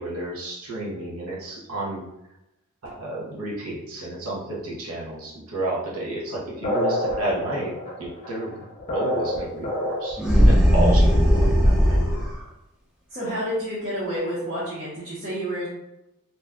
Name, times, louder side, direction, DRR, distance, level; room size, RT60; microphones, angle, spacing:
voice 1, 0.0-2.0 2.8-7.7 8.0-8.6 8.9-12.2, right 2 dB, 70° right, -5 dB, 0.9 m, -31 dB
sound 1, 6.6-10.3, left 1 dB, 30° left, 0.8 m, -27 dB
sound 2, 10.2-12.4, equal, 5° right, 0.7 m, -17 dB
voice 2, 13.1-15.7, equal, 40° right, -9 dB, 0.9 m, -29 dB
2.7 x 2.3 x 3.4 m, 0.92 s
head